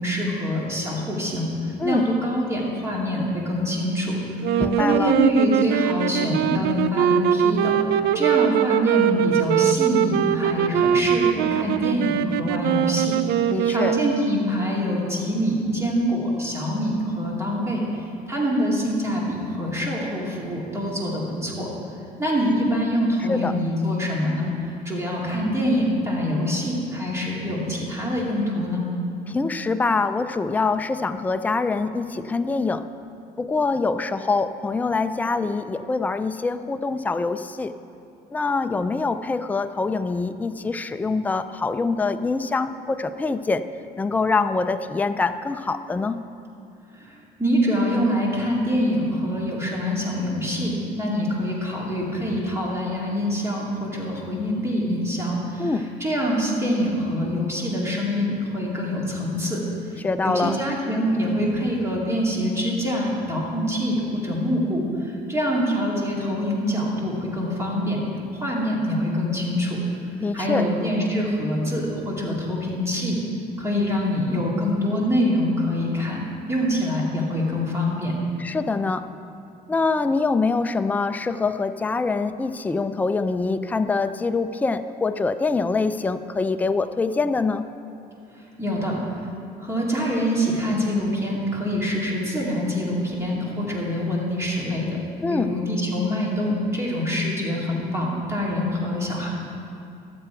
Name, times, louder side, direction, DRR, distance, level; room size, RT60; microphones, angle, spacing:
voice 1, 0.0-4.2 4.5-13.2 13.7-21.7 22.2-28.8 46.9-55.7 56.0-59.6 60.2-68.0 68.3-69.8 70.3-73.2 73.6-76.2 76.5-78.1 88.3-89.0 89.6-95.0 95.3-99.3, equal, 15° right, -4 dB, 2.2 m, -25 dB
sound 1, 4.4-14.5, right 10 dB, 75° right, 0.4 m, -22 dB
voice 2, 4.6-5.1 13.5-14.0 23.3-23.5 29.3-32.9 33.4-37.7 38.3-43.7 44.0-46.2 55.6-55.9 60.0-60.6 70.2-70.7 78.4-79.1 79.7-87.6 95.2-95.6, left 3 dB, 10° left, 10 dB, 0.3 m, -24 dB
12.5 x 7.7 x 4.5 m, 2.6 s
cardioid pair, 110°, 17 cm